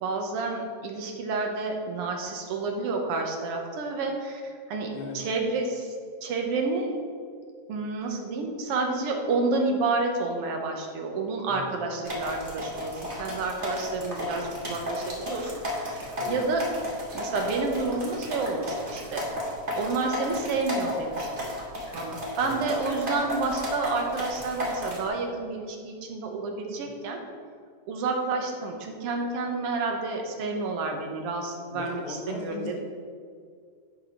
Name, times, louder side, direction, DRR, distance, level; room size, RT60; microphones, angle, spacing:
voice 1, 0.0-4.9 5.1-5.9 6.2-6.9 7.7-16.6 17.1-19.2 19.8-21.5 21.9-27.2 27.9-32.8, right 3 dB, 60° right, 2 dB, 1.8 m, -30 dB
voice 2, 11.5-12.2 16.0-16.4 22.4-22.6 26.8-26.9 31.7-32.8, left 4 dB, 75° left, -1 dB, 2.8 m, -39 dB
sound 1, 12.1-25.1, left 1 dB, 25° right, 1.4 m, -34 dB
10.5 x 4.9 x 5.7 m, 2.1 s
omnidirectional pair, 3.3 m